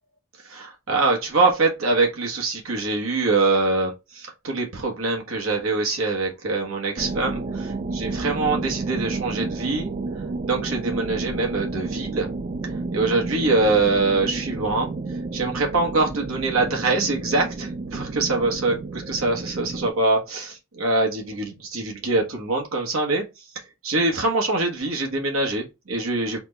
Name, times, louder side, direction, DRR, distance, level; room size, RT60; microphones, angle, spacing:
voice 1, 0.4-9.9 10.4-12.3 12.9-15.0 15.3-23.2 23.8-26.4, right 3 dB, 70° right, 1.0 m, -24 dB
sound 1, 7.0-19.9, right 3 dB, 35° right, 0.3 m, -31 dB
4.2 x 2.1 x 3.9 m
head